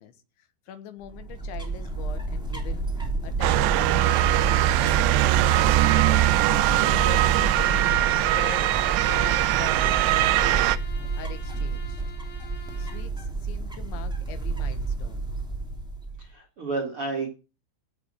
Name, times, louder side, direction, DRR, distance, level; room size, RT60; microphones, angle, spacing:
voice 1, 0.0-5.1 5.6-6.3 6.8-12.0 12.8-15.3, left 10 dB, 75° left, 3.7 m, -43 dB
sound 1, 1.0-16.3, right 3 dB, ahead, 1.2 m, -30 dB
Motor vehicle (road) / Siren, 3.4-10.8, right 16 dB, 85° right, 3.1 m, -21 dB
Bowed string instrument, 6.9-13.1, left 1 dB, 50° left, 1.5 m, -44 dB
voice 2, 16.2-17.3, right 3 dB, 45° right, 1.8 m, -31 dB
16.0 x 5.3 x 6.5 m
omnidirectional pair, 5.4 m